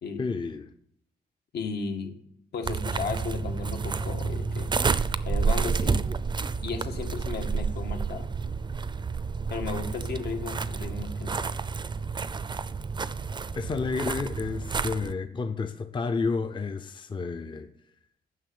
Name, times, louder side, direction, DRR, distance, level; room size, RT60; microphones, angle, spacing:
voice 1, 0.2-0.7 13.6-17.7, left 4 dB, 30° left, 0.6 m, -30 dB
voice 2, 1.5-2.2 2.5-4.7 5.2-6.0 6.6-8.3 9.5-11.4, left 5 dB, 75° left, 1.7 m, -34 dB
sound 1, 2.6-15.1, right 5 dB, 25° right, 0.5 m, -30 dB
9.6 x 6.6 x 8.4 m
wide cardioid pair, 135°, 17 cm